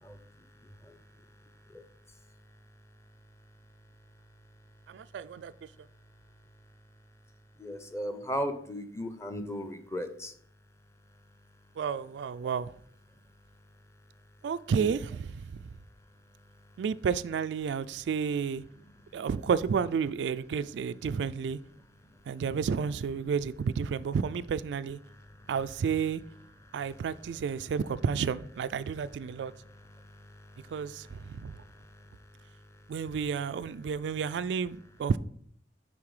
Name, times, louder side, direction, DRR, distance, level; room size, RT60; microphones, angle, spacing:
voice 1, 0.0-2.4 5.7-5.8 7.6-10.3 15.6-15.7 17.9-18.0 18.7-19.2 21.7-22.2 25.1-25.6 26.6-27.7 28.8-33.2 33.8-33.9, equal, 15° left, 0.7 m, -41 dB
voice 2, 4.9-5.5 11.8-12.7 14.4-15.3 16.8-18.6 19.1-21.6 22.3-25.0 25.5-26.2 26.7-29.5 30.7-31.5 32.9-35.2, right 6 dB, 75° right, 0.3 m, -31 dB
9.5 x 3.9 x 4.9 m
head